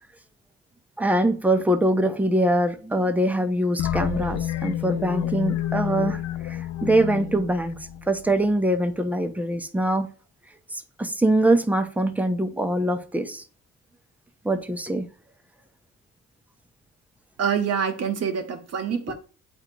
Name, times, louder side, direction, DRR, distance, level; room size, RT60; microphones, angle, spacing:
voice 1, 1.0-10.1 10.7-13.4 14.4-15.1, right 1 dB, 5° right, 0.7 m, -23 dB
sound 1, 3.8-8.5, left 11 dB, 65° left, 0.5 m, -29 dB
voice 2, 17.4-19.1, right 7 dB, 55° right, 1.0 m, -26 dB
8.0 x 2.7 x 4.5 m
cardioid pair, 90°, 30 cm